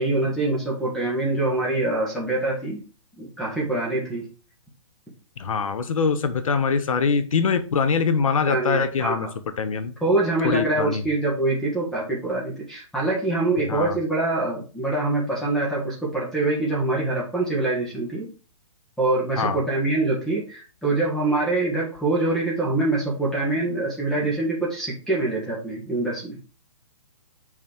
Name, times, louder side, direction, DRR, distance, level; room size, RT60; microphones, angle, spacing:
voice 1, 0.0-2.8 3.2-4.3 8.4-9.3 10.0-18.3 19.0-26.4, right 2 dB, 5° left, -4 dB, 1.5 m, -24 dB
voice 2, 5.4-9.3 9.6-9.9 10.4-11.0 13.7-14.0 19.4-19.6, left 5 dB, 75° left, 11 dB, 1.1 m, -23 dB
6.1 x 4.2 x 4.4 m, 0.36 s
hypercardioid pair, 155°, 17 cm